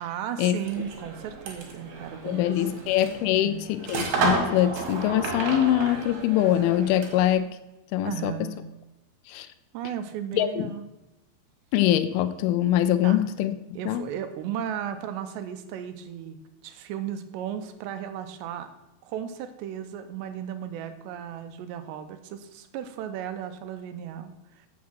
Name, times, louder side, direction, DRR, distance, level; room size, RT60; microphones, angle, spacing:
voice 1, 0.0-2.4 2.7-3.0 3.4-3.6 8.0-8.6 9.7-10.9 13.0-13.2 13.8-18.7 19.0-24.7, right 9 dB, 85° right, 9 dB, 2.9 m, -35 dB
sound 1, 0.6-7.4, right 4 dB, 65° right, 3.5 m, -32 dB
voice 2, 2.2-7.5 7.9-8.5 9.3-9.5 10.3-10.7 11.7-13.6 13.9-14.1, left 12 dB, 85° left, 11 dB, 2.2 m, -23 dB
7.4 x 7.1 x 6.2 m, 0.97 s
omnidirectional pair, 5.0 m